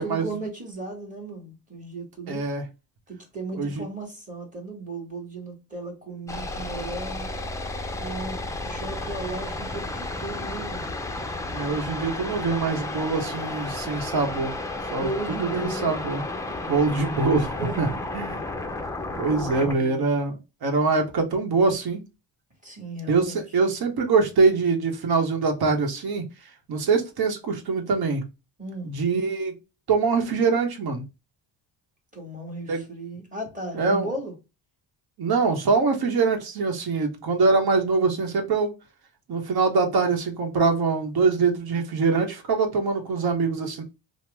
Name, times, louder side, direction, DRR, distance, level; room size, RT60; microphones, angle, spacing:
voice 1, 0.0-2.4 3.1-7.3 8.0-10.9 15.0-15.9 17.6-18.5 19.3-20.0 22.6-23.4 28.6-28.9 32.1-34.3, right 2 dB, 15° right, 1.6 m, -36 dB
voice 2, 2.3-2.6 3.5-3.8 11.4-14.5 14.9-15.1 15.4-16.2 16.5-17.9 18.1-18.4 19.2-22.0 23.1-26.2 26.7-28.2 28.8-29.5 29.9-31.0 32.7-32.8 33.7-34.1 35.2-38.7 39.3-43.8, right 4 dB, 50° right, 1.0 m, -23 dB
sound 1, 6.3-19.8, left 2 dB, 5° left, 0.4 m, -32 dB
2.8 x 2.0 x 3.3 m
cardioid pair, 95°, 46 cm